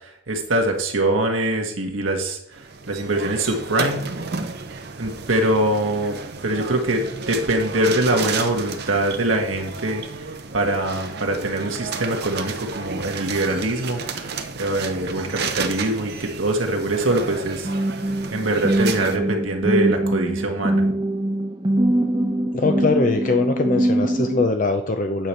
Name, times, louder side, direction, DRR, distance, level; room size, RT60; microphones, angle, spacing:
voice 1, 0.0-2.4 2.9-4.0 5.0-17.7 18.3-20.8, right 1 dB, 85° right, 2 dB, 1.6 m, -23 dB
sound 1, 2.5-19.2, right 4 dB, 55° right, 0.8 m, -32 dB
sound 2, 17.6-24.5, right 1 dB, 20° right, 1.0 m, -23 dB
voice 2, 22.5-25.3, left 3 dB, 40° left, 6 dB, 0.5 m, -22 dB
9.0 x 6.7 x 4.4 m, 0.74 s
head